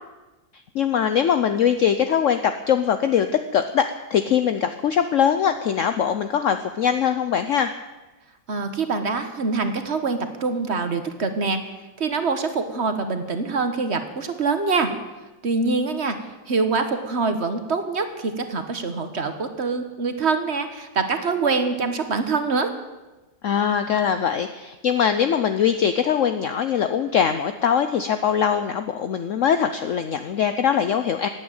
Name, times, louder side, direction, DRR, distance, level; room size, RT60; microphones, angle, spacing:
voice 1, 0.7-3.3 3.5-3.8 4.1-7.7 23.4-31.3, left 8 dB, 65° left, 9 dB, 0.8 m, -22 dB
voice 2, 8.5-11.6 12.0-14.9 15.4-16.2 16.5-22.7, right 4 dB, 40° right, 8 dB, 1.4 m, -24 dB
16.5 x 9.1 x 9.0 m, 1.1 s
omnidirectional pair, 2.1 m